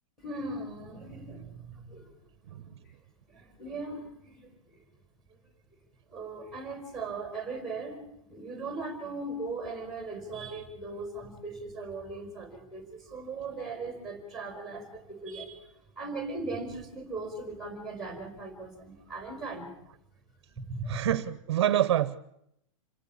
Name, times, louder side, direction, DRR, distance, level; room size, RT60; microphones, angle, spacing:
voice 1, 0.2-2.1 2.5-3.0 3.3-4.8 6.1-8.0 8.3-19.7 20.6-21.1, right 3 dB, ahead, 4.7 m, -39 dB
voice 2, 20.9-22.2, right 11 dB, 50° right, 1.0 m, -26 dB
27.5 x 17.5 x 8.7 m
supercardioid pair, 180°, 17 cm